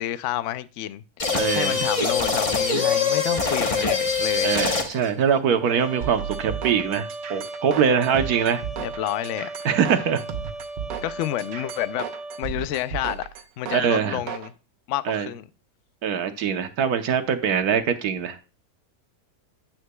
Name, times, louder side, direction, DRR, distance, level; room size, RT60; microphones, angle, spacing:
voice 1, 0.0-4.5 8.4-8.5 8.8-9.7 11.0-12.0 12.4-13.2 13.6-14.5 14.9-15.5, left 13 dB, 85° left, 0.6 m, -29 dB
sound 1, 1.2-5.1, left 4 dB, 25° left, 0.8 m, -23 dB
voice 2, 1.3-1.8 4.4-8.6 9.6-10.2 13.7-14.2 15.1-15.3 16.0-18.4, right 7 dB, 65° right, 1.3 m, -23 dB
Trumpet, 5.6-12.5, right 2 dB, 45° right, 1.4 m, -37 dB
sound 2, 6.0-14.5, right 8 dB, 85° right, 1.5 m, -34 dB
9.5 x 8.8 x 2.2 m
omnidirectional pair, 1.8 m